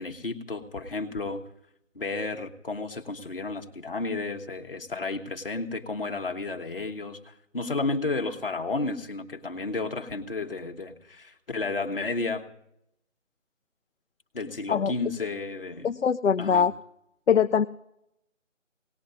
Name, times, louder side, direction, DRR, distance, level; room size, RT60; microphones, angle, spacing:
voice 1, 0.0-1.4 1.9-12.5 14.3-15.9 16.4-16.7, left 3 dB, 45° left, 4 dB, 1.2 m, -32 dB
voice 2, 15.8-16.7 17.3-17.7, left 7 dB, 65° left, 8 dB, 0.5 m, -22 dB
20.5 x 18.5 x 2.7 m, 0.79 s
figure-of-eight pair, 170°, 39 cm